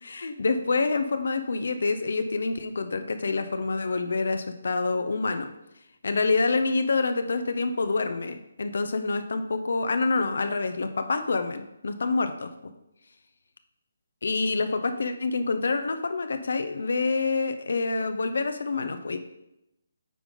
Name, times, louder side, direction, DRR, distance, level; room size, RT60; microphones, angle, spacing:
voice 1, 0.0-5.5 6.0-12.5 14.2-19.2, left 3 dB, 65° left, 9 dB, 0.7 m, -27 dB
8.5 x 3.7 x 5.2 m, 0.85 s
figure-of-eight pair, 145°, 0 cm